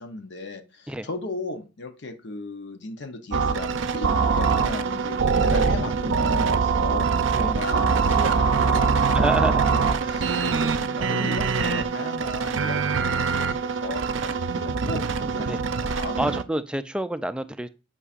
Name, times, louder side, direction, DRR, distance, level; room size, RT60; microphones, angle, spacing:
voice 1, 0.0-7.1 7.4-9.1 9.4-16.2, left 3 dB, 60° left, 7 dB, 0.8 m, -36 dB
sound 1, 3.3-16.4, right 5 dB, 75° right, 0.6 m, -23 dB
voice 2, 9.1-9.7 15.5-15.6 16.2-17.7, right 1 dB, 5° right, 11 dB, 0.3 m, -28 dB
9.7 x 5.5 x 2.5 m, 0.31 s
head